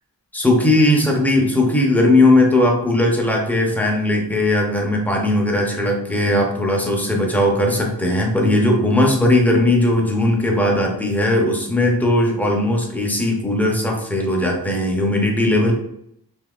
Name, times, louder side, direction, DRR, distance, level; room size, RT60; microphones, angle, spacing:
voice 1, 0.3-15.7, left 1 dB, 5° left, 0 dB, 0.6 m, -18 dB
3.5 x 2.7 x 2.3 m, 0.75 s
wide cardioid pair, 90°, 41 cm